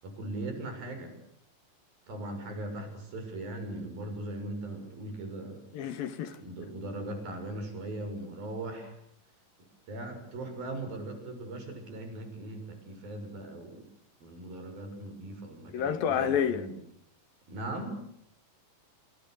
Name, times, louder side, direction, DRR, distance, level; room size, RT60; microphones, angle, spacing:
voice 1, 0.0-1.1 2.1-5.6 6.4-9.0 9.9-13.9 14.2-16.8 17.5-18.0, right 2 dB, 85° right, 9.0 m, -39 dB
voice 2, 5.7-6.4 15.7-16.7, left 8 dB, 80° left, 3.8 m, -29 dB
28.5 x 28.5 x 6.7 m
omnidirectional pair, 4.1 m